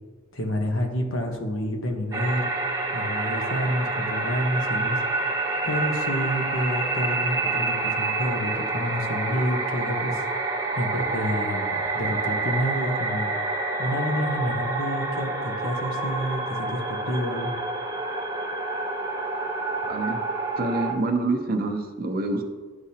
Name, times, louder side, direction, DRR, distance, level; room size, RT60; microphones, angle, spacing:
voice 1, 0.3-2.5 2.9-5.0 5.6-10.2 10.7-13.3 13.8-17.5, equal, 80° left, 3 dB, 1.1 m, -29 dB
sound 1, 2.1-20.9, right 3 dB, 15° right, 0.8 m, -28 dB
voice 2, 19.9-20.2 20.6-22.4, right 2 dB, 45° right, 5 dB, 0.8 m, -26 dB
11.0 x 4.9 x 2.8 m, 1.4 s
head